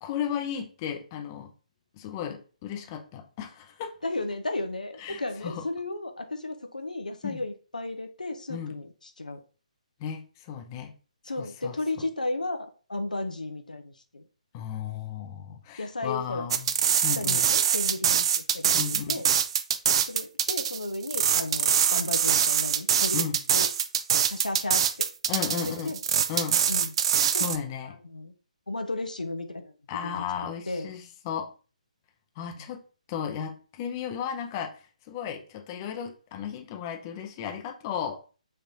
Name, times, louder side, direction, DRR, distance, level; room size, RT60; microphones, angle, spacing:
voice 1, 0.0-1.5 1.9-3.9 5.0-5.6 7.2-7.4 8.5-8.8 10.0-10.9 11.4-12.0 14.5-16.7 17.0-17.5 18.7-19.2 23.1-23.4 25.3-25.9 26.3-26.6 27.3-28.0 29.9-31.5 32.4-32.8 33.1-34.7 35.1-38.2, left 8 dB, 30° left, 4 dB, 0.6 m, -34 dB
voice 2, 4.0-9.4 11.2-14.2 15.8-16.5 17.2-19.3 20.0-23.7 24.1-24.8 25.8-26.0 26.7-26.9 27.3-27.5 27.8-28.3 28.7-29.7 30.0-30.1 30.7-30.9 32.6-32.7, left 2 dB, 85° left, 6 dB, 0.7 m, -34 dB
sound 1, 16.5-27.6, right 8 dB, 45° right, 0.4 m, -24 dB
5.1 x 3.3 x 2.7 m, 0.36 s
figure-of-eight pair, 140°, 4 cm